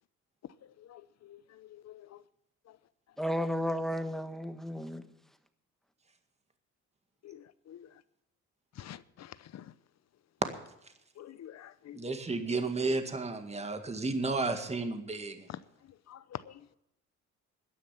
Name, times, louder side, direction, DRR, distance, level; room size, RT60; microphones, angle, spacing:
voice 1, 3.2-5.0, equal, ahead, 1.3 m, -33 dB
voice 2, 8.8-9.6 11.2-12.0 16.1-16.4, left 11 dB, 60° left, 0.8 m, -46 dB
voice 3, 11.9-15.3, right 3 dB, 20° right, 1.9 m, -32 dB
14.5 x 10.0 x 5.8 m
cardioid pair, 90°, 30 cm